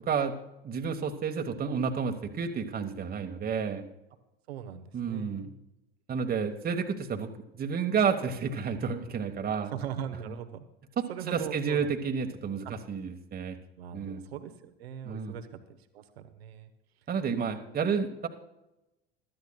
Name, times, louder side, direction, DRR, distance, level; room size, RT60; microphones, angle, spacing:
voice 1, 0.6-3.8 4.9-5.5 6.1-9.7 11.0-11.1 11.3-13.6 13.9-14.2 15.0-15.3 17.1-18.3, right 6 dB, 30° right, 4 dB, 1.3 m, -30 dB
voice 2, 4.5-5.5 9.6-10.6 11.1-11.9 12.6-12.7 13.8-16.7, right 9 dB, 75° right, 8 dB, 1.1 m, -40 dB
23.0 x 13.0 x 2.3 m, 0.91 s
figure-of-eight pair, 75°, 32 cm